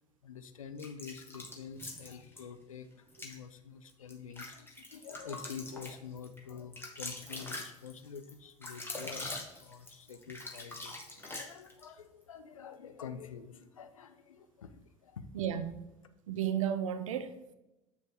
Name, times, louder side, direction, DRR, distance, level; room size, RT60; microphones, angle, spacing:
voice 1, 0.2-9.3 9.6-15.3, left 6 dB, 80° left, 0.6 m, -47 dB
sound 1, 0.8-2.4 3.1-3.4 3.9-11.9, left 2 dB, 15° left, 1.8 m, -43 dB
voice 2, 15.3-15.8 16.3-17.5, right 9 dB, 75° right, 0.7 m, -33 dB
8.2 x 6.4 x 3.5 m
figure-of-eight pair, 60°, 17 cm